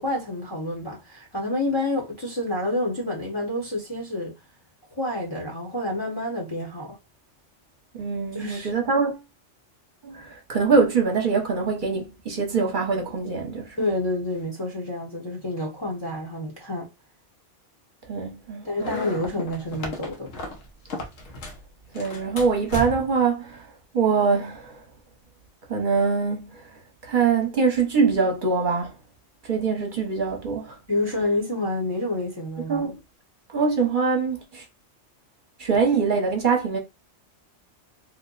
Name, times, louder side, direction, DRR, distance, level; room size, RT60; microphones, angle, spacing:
voice 1, 0.0-4.3 4.9-7.0 8.3-8.7 13.8-16.9 18.6-20.3 30.9-32.9, left 1 dB, 25° left, 0.7 m, -28 dB
voice 2, 8.0-9.2 10.0-13.8 18.1-19.0 21.9-23.6 23.9-24.8 25.7-26.6 27.0-28.9 29.4-30.8 32.7-33.0 33.5-34.6 35.6-36.8, right 5 dB, 45° right, 0.9 m, -23 dB
sound 1, 18.8-21.6 21.9-23.2, left 1 dB, 85° left, 1.2 m, -35 dB
3.1 x 2.1 x 3.8 m
omnidirectional pair, 1.3 m